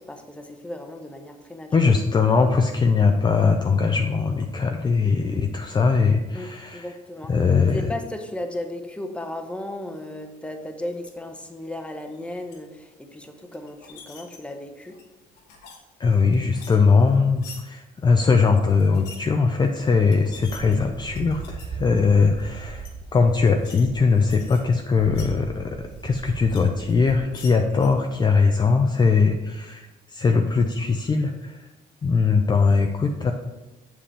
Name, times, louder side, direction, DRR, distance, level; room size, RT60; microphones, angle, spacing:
voice 1, 0.0-1.9 6.3-7.3 7.7-15.0, left 1 dB, 5° left, 5 dB, 0.9 m, -35 dB
voice 2, 1.7-6.9 7.3-7.9 16.0-31.7 32.0-33.3, left 4 dB, 25° left, 4 dB, 0.5 m, -20 dB
sound 1, 10.9-11.1 12.0-12.6 13.5-14.4 14.8-15.8 16.1-17.6 18.8-19.2 19.8-19.9 20.1-21.7 22.2-22.4 22.8-22.9 23.4-23.8 24.1-25.3 25.9-26.6 26.9-27.9, left 5 dB, 90° left, 1.6 m, -45 dB
sound 2, 20.3-27.2, right 4 dB, 30° right, 0.8 m, -38 dB
7.6 x 6.9 x 3.4 m, 1.1 s
cardioid pair, 110°, 17 cm